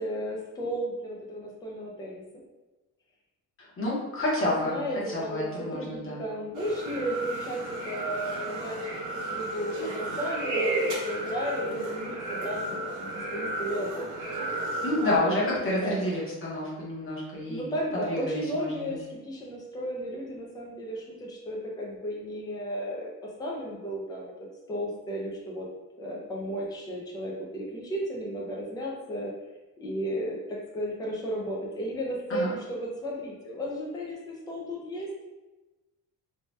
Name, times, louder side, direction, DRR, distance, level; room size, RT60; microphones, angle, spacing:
voice 1, 0.0-2.2 4.4-5.5 5.7-14.1 15.0-15.5 15.7-16.1 17.5-24.3 24.7-25.7 26.0-29.3 29.8-35.1, equal, 10° left, -2 dB, 0.3 m, -34 dB
voice 2, 3.6-4.8 5.1-6.2 14.8-18.9 32.3-32.5, left 1 dB, 35° left, -5 dB, 0.8 m, -29 dB
sound 1, 6.5-15.2, right 2 dB, 55° right, 0.8 m, -33 dB
2.7 x 2.1 x 3.1 m, 1.1 s
cardioid pair, 175°, 37 cm